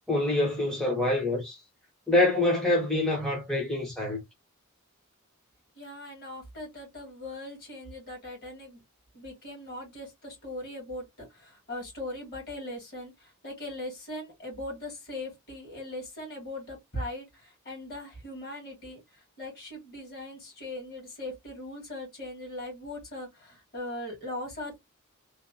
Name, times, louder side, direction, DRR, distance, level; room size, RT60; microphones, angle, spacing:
voice 1, 0.1-1.6 2.1-4.2, left 2 dB, ahead, 0.6 m, -26 dB
voice 2, 5.7-8.8 9.1-24.8, left 1 dB, 45° left, 1.7 m, -40 dB
2.9 x 2.0 x 2.5 m
head